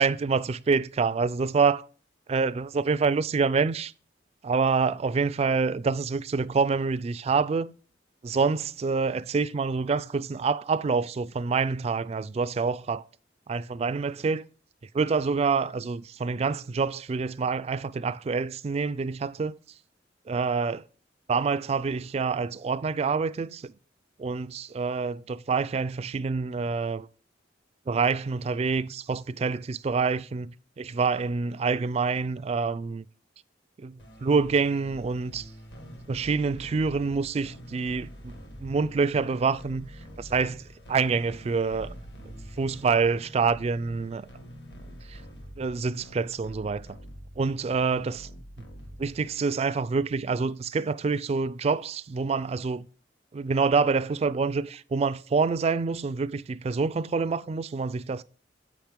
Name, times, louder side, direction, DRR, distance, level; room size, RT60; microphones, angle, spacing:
voice 1, 0.0-1.9 2.3-3.9 4.4-7.7 8.2-13.0 13.5-14.5 14.9-19.5 20.3-20.8 21.3-23.7 24.2-27.1 27.9-33.1 33.8-35.5 36.1-38.3 38.6-39.9 40.2-41.9 42.6-44.3 45.1-45.2 45.6-46.9 47.4-48.3 49.0-52.9 53.3-58.2, right 4 dB, 35° right, 0.3 m, -27 dB
sound 1, 34.0-49.4, equal, 65° left, 1.5 m, -46 dB
7.9 x 5.9 x 3.4 m
head